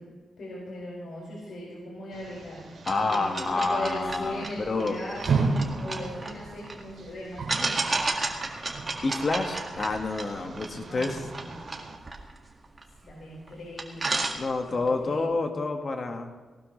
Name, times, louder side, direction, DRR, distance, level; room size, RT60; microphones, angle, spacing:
voice 1, 0.4-5.5 5.8-7.9 10.7-11.6 13.0-14.1 14.7-15.2, left 1 dB, 65° left, -5 dB, 5.1 m, -39 dB
sound 1, 2.1-12.0, right 4 dB, 60° right, 2.3 m, -35 dB
sound 2, 2.8-6.8 7.5-13.1 13.5-13.6 13.8-14.9, right 3 dB, 30° right, 1.9 m, -33 dB
voice 2, 2.9-5.0 9.0-11.3 14.3-16.3, left 3 dB, 40° left, 4 dB, 1.7 m, -28 dB
19.0 x 18.5 x 3.2 m, 1.3 s
wide cardioid pair, 125°, 0 cm